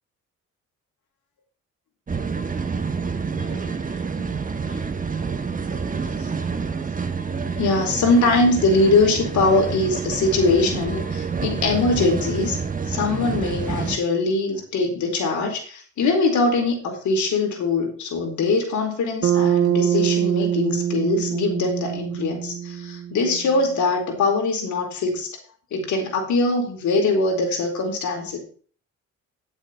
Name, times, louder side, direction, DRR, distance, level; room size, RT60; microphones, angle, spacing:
sound 1, 2.1-14.0, right 5 dB, 25° right, 1.4 m, -28 dB
voice 1, 3.4-4.3 4.6-4.8 7.4-12.6 12.9-25.3 25.7-28.4, left 3 dB, 75° left, 2 dB, 4.4 m, -22 dB
Bass guitar, 19.2-23.6, right 10 dB, 50° right, 0.5 m, -24 dB
10.5 x 8.0 x 4.6 m, 0.43 s
cardioid pair, 90°, 30 cm